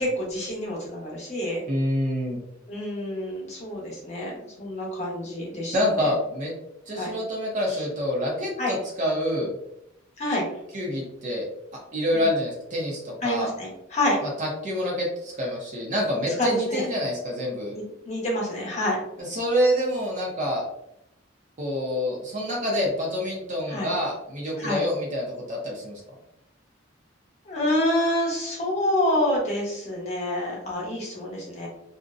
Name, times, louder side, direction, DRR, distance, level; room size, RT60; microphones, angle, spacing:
voice 1, 0.0-1.6 2.7-6.1 6.9-7.1 7.7-7.8 8.6-8.7 10.2-10.5 12.1-12.3 13.2-14.2 16.4-16.8 17.7-19.0 23.7-23.9 24.6-24.8 27.4-31.7, left 1 dB, 35° left, -3 dB, 0.9 m, -27 dB
voice 2, 1.7-2.4 5.7-6.5 6.9-9.6 10.7-11.5 11.9-13.5 14.4-17.7 19.3-20.6 21.6-26.0, equal, 40° right, -2 dB, 0.6 m, -27 dB
2.5 x 2.1 x 2.5 m, 0.80 s
head